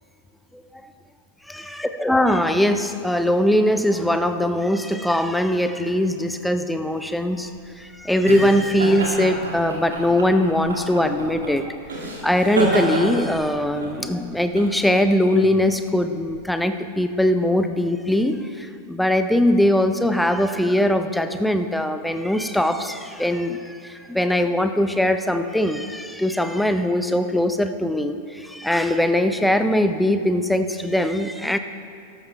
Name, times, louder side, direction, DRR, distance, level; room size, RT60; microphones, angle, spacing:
voice 1, 1.5-7.5 7.8-31.6, left 1 dB, 5° left, 8 dB, 0.6 m, -21 dB
sound 1, 7.2-16.4, right 1 dB, 70° right, 2.2 m, -30 dB
13.0 x 12.5 x 3.3 m, 2.4 s
figure-of-eight pair, 90°, 0 cm